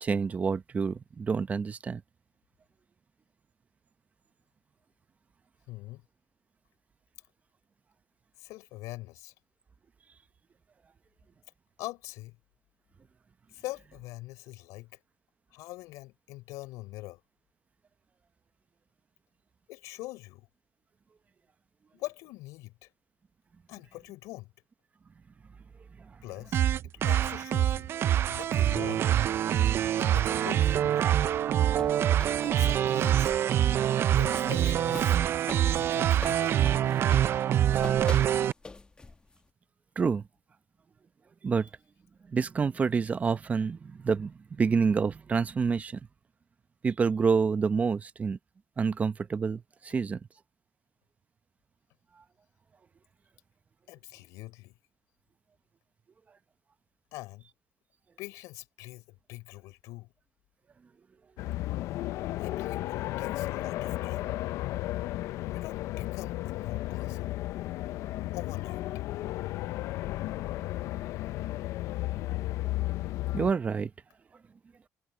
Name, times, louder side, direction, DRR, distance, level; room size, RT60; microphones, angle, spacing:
voice 1, 0.0-2.0 40.0-40.2 41.4-41.7 42.3-46.0 46.8-48.4 48.8-50.2 73.3-73.9, right 5 dB, 25° right, 0.8 m, -28 dB
voice 2, 5.7-6.0 8.4-9.3 11.8-12.4 13.5-14.9 15.5-17.2 19.7-20.5 21.9-22.9 23.7-24.5 26.2-27.9 28.3-29.0 30.0-31.1 32.5-33.3 34.1-35.2 35.7-36.6 53.9-54.7 57.1-57.5 58.2-60.1 62.4-64.3 65.5-67.4 68.3-68.8, left 19 dB, 90° left, 5.9 m, -43 dB
sound 1, 26.5-38.5, right 11 dB, 50° right, 0.4 m, -25 dB
sound 2, 31.3-33.4 33.7-39.4, left 3 dB, 15° left, 1.0 m, -44 dB
sound 3, 61.4-73.5, left 16 dB, 75° left, 0.5 m, -34 dB
cardioid pair, 120°, 5 cm